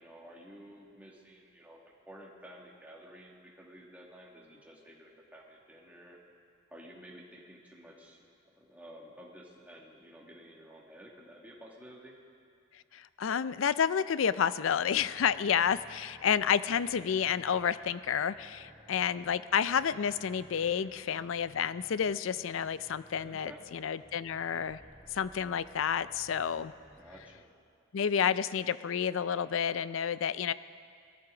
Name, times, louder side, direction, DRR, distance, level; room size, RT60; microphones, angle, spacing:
voice 1, 0.0-6.2 6.7-8.2 8.6-12.2 20.6-20.9 23.2-23.6 26.9-27.5, equal, 10° right, -3 dB, 2.1 m, -52 dB
voice 2, 12.9-24.8 25.1-26.7 27.9-30.5, left 7 dB, 70° left, 15 dB, 0.4 m, -30 dB
sound 1, 14.6-27.3, equal, 15° left, 4.7 m, -58 dB
21.5 x 14.0 x 3.9 m, 2.3 s
head